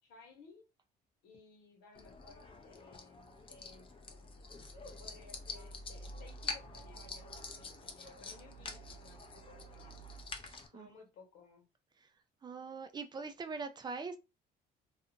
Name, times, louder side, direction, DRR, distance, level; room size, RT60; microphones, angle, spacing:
voice 1, 0.0-0.6 1.2-3.9 5.0-10.1 10.7-11.6, left 4 dB, 90° left, 1.2 m, -59 dB
sound 1, 1.9-10.7, left 3 dB, 30° left, 0.5 m, -46 dB
voice 2, 10.4-10.9 12.4-14.2, right 4 dB, 25° right, 0.3 m, -42 dB
2.5 x 2.4 x 2.7 m
cardioid pair, 110°, 17 cm